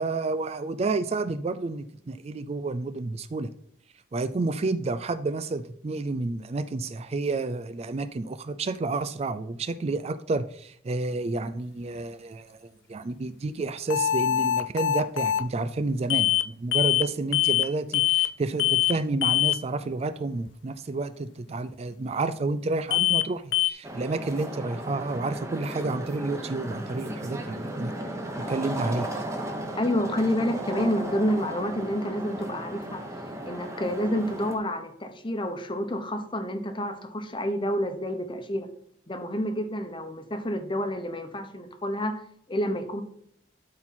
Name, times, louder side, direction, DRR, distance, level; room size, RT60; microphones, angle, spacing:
voice 1, 0.0-3.5 4.1-27.9 28.4-29.2, right 3 dB, 35° right, 12 dB, 0.4 m, -30 dB
sound 1, 13.9-15.5 16.1-16.5 16.7-17.1 17.3-17.7 17.9-18.3 18.6-18.9 19.2-19.6 22.9-23.3 23.5-23.7, left 12 dB, 80° left, 0.3 m, -23 dB
sound 2, 23.8-34.6, right 1 dB, 15° right, 1.2 m, -35 dB
voice 2, 29.8-33.0 33.5-38.7 39.1-42.2 42.5-43.0, equal, 25° left, 7 dB, 1.0 m, -29 dB
12.0 x 4.4 x 4.3 m, 0.68 s
head